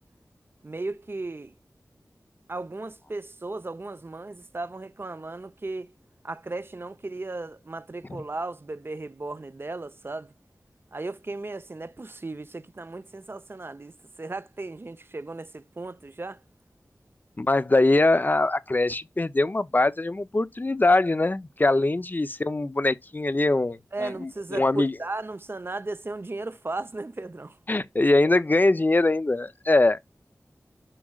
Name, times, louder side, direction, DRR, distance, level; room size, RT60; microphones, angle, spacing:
voice 1, 0.6-1.5 2.5-5.9 6.2-10.3 10.9-16.4 23.9-27.6, right 2 dB, 45° right, 0.8 m, -35 dB
voice 2, 17.4-24.9 27.7-30.0, left 2 dB, 35° left, 0.7 m, -22 dB
9.9 x 6.1 x 2.4 m
wide cardioid pair, 60°, 6 cm